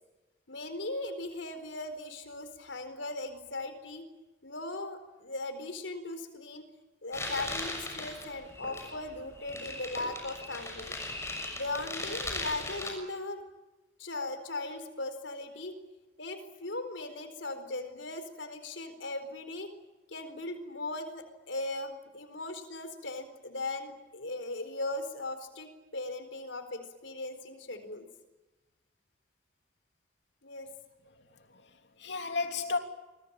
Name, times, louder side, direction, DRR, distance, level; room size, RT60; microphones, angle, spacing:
voice 1, 0.5-4.1 4.4-6.6 7.0-11.0 11.5-13.4 14.0-15.7 16.2-19.7 20.1-28.1 30.4-30.7, left 2 dB, 80° left, 4.4 m, -38 dB
sound 1, 7.1-12.9, left 2 dB, 15° left, 6.6 m, -38 dB
voice 2, 31.0-32.8, left 4 dB, 65° left, 3.3 m, -35 dB
27.5 x 23.5 x 8.9 m
head